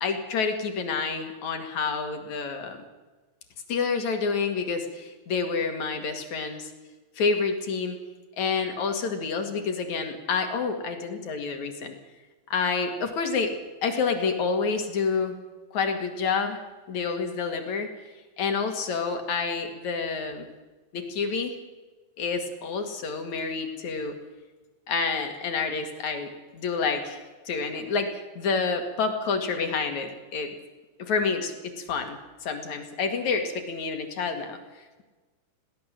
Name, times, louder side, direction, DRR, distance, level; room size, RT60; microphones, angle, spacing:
voice 1, 0.0-2.8 3.7-6.7 7.2-8.0 8.4-12.0 12.5-13.5 13.8-15.4 15.7-16.6 16.9-17.9 18.4-20.5 20.9-21.5 22.2-24.2 24.9-28.1 28.4-30.5 31.0-34.6, left 5 dB, 60° left, 5 dB, 3.3 m, -28 dB
22.0 x 17.5 x 7.5 m, 1.3 s
omnidirectional pair, 3.9 m